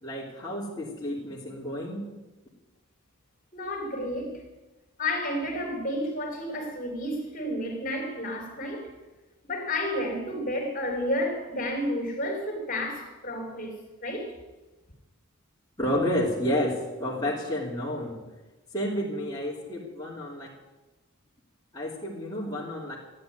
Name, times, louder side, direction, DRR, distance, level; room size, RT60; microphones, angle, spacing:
voice 1, 0.0-2.0 15.8-18.2 18.7-20.5 21.7-23.0, left 1 dB, 15° left, 3.0 m, -30 dB
voice 2, 3.5-4.4 5.0-8.9 9.4-14.4, left 1 dB, 40° left, 3.5 m, -31 dB
14.5 x 9.8 x 9.2 m
head